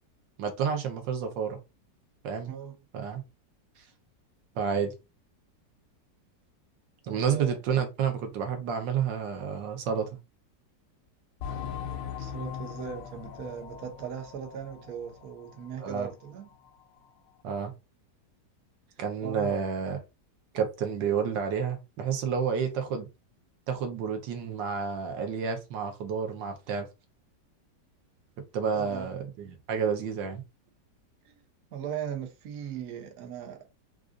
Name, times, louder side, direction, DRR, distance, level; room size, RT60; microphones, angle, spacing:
voice 1, 0.4-1.6 2.2-2.5 2.9-3.2 4.5-4.9 7.0-10.1 15.8-16.1 17.4-17.7 19.0-20.0 20.5-23.1 23.7-26.9 28.5-30.4, right 6 dB, 85° right, 1.5 m, -30 dB
voice 2, 2.4-2.8 7.1-7.6 12.2-16.5 19.2-19.6 28.7-29.1 31.2-31.4 31.7-33.6, right 8 dB, 60° right, 1.1 m, -38 dB
sound 1, 11.4-15.7 16.0-16.1 16.7-16.8, left 8 dB, 90° left, 1.4 m, -40 dB
4.9 x 2.4 x 2.5 m
omnidirectional pair, 1.9 m